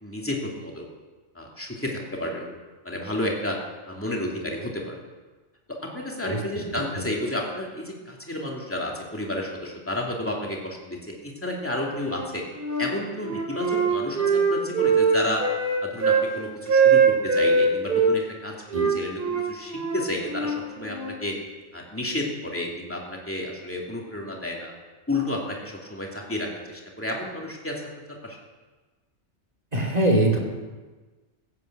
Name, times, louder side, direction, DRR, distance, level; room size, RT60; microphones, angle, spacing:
voice 1, 0.0-0.9 1.3-2.5 2.8-3.6 3.9-5.0 5.9-12.4 12.8-15.4 15.8-18.5 18.9-21.4 21.7-24.7 25.1-27.8 28.1-28.4, left 1 dB, 10° left, -1 dB, 2.6 m, -31 dB
voice 2, 6.7-7.0 18.7-18.9 29.7-30.4, right 1 dB, 35° right, -1 dB, 2.9 m, -23 dB
Wind instrument woodwind instrument, 12.0-12.9 13.2-16.3 16.7-18.1 18.7-21.2, right 5 dB, 50° right, 3.0 m, -22 dB
16.0 x 9.3 x 7.8 m, 1.3 s
omnidirectional pair, 1.2 m